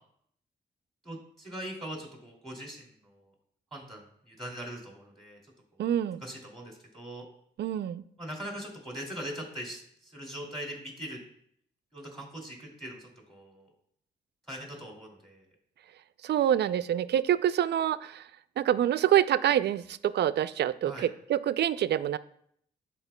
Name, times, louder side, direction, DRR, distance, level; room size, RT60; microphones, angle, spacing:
voice 1, 1.0-3.3 3.7-5.4 5.7-5.8 6.2-7.3 8.2-11.2 11.9-13.7 14.5-15.4 20.8-21.1, equal, ahead, -1 dB, 2.5 m, -41 dB
voice 2, 5.8-6.2 7.6-8.0 16.2-18.2 18.6-22.2, right 11 dB, 65° right, 15 dB, 0.4 m, -26 dB
13.0 x 4.3 x 2.2 m, 0.68 s
cardioid pair, 65°, 18 cm